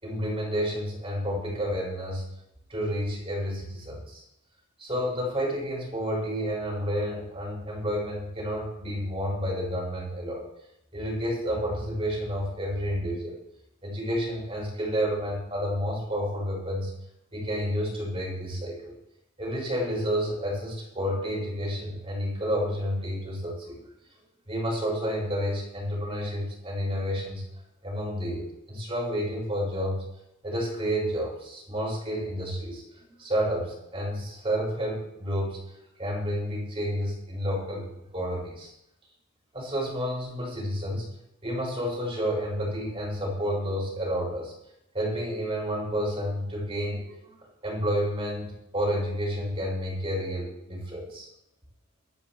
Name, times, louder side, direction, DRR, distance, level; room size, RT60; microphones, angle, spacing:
voice 1, 0.0-2.3 2.7-4.2 4.8-10.5 10.9-13.4 13.8-16.9 17.3-19.0 19.4-23.8 24.5-27.4 27.8-30.0 30.4-35.6 36.0-37.9 38.1-38.7 39.5-41.1 41.4-44.5 44.9-47.3 47.6-51.3, equal, 25° right, -2 dB, 5.2 m, -30 dB
24.5 x 10.5 x 3.0 m, 0.85 s
head